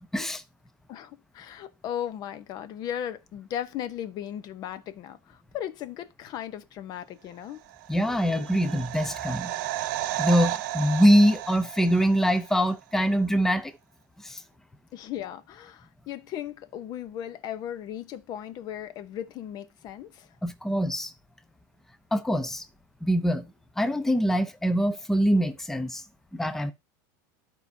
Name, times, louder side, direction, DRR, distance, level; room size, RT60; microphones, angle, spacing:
voice 1, 0.9-7.6 14.9-20.3, left 10 dB, 40° left, 0.8 m, -37 dB
sound 1, 7.7-12.6 12.8-12.9, right 14 dB, 65° right, 1.0 m, -33 dB
voice 2, 7.9-9.5 10.2-13.7 14.2-14.4 20.4-21.1 22.1-22.6 23.0-23.5 23.8-26.0 26.3-26.7, equal, 5° left, 0.7 m, -23 dB
13.5 x 4.7 x 2.7 m
supercardioid pair, 140°, 11 cm